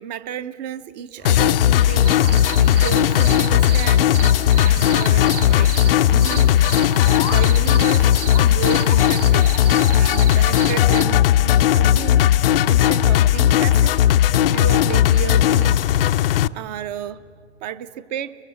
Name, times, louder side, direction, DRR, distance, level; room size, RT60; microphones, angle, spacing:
voice 1, 0.0-2.1 2.6-4.1 4.5-5.7 6.1-6.5 7.2-9.5 9.9-12.2 12.7-14.0 14.3-15.9 16.5-17.2 17.6-18.4, right 10 dB, 35° right, 14 dB, 0.8 m, -32 dB
sound 1, 1.2-16.5, left 11 dB, 50° left, 0.6 m, -16 dB
sound 2, 1.2-12.0, left 9 dB, 15° left, 0.7 m, -39 dB
sound 3, 2.0-11.0, right 9 dB, 70° right, 0.8 m, -33 dB
23.0 x 20.5 x 9.2 m, 2.3 s
hypercardioid pair, 125°, 36 cm